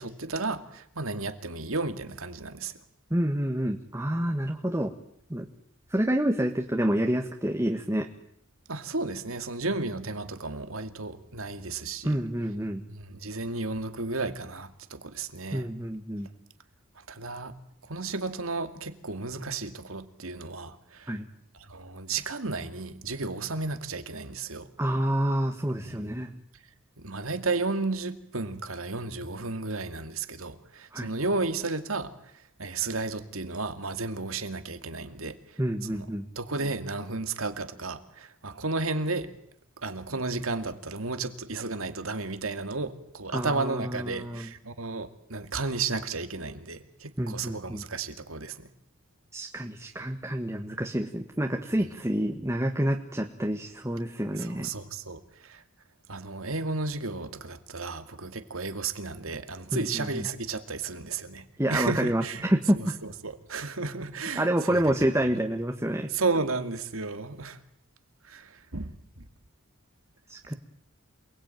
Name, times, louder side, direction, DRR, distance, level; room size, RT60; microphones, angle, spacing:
voice 1, 0.0-2.7 8.7-12.2 12.9-15.7 17.1-17.5 17.8-21.1 21.7-24.7 25.8-26.1 27.0-32.1 32.6-35.4 35.9-36.1 36.4-39.3 39.8-48.7 54.3-55.6 56.1-62.5 62.8-64.8 66.1-67.6 68.2-69.3, right 3 dB, 75° right, 9 dB, 2.3 m, -33 dB
voice 2, 3.1-4.9 5.3-5.5 5.9-8.1 12.0-12.8 15.5-16.3 21.1-21.2 24.8-26.3 30.9-31.1 35.6-36.3 43.3-44.5 47.2-47.8 49.3-54.7 59.7-60.3 61.6-63.0 64.3-66.1 70.3-70.5, right 1 dB, 15° right, 3 dB, 1.5 m, -28 dB
28.0 x 20.5 x 9.2 m, 0.69 s
head